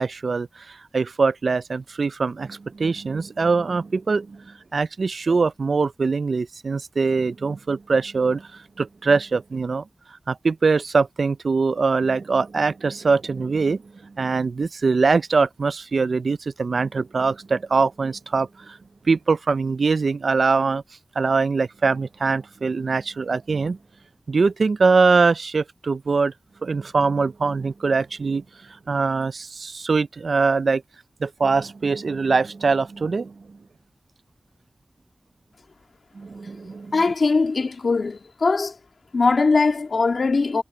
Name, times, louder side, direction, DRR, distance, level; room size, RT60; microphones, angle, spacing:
voice 1, 0.0-9.8 10.3-18.8 19.1-20.8 21.2-23.8 24.3-26.3 26.6-28.4 28.9-30.8 31.2-33.3 36.2-36.9, right 4 dB, 85° right, 0.3 m, -22 dB
voice 2, 36.9-38.8 39.1-40.6, left 4 dB, 85° left, 1.9 m, -21 dB
wide cardioid pair, 60°, 0 cm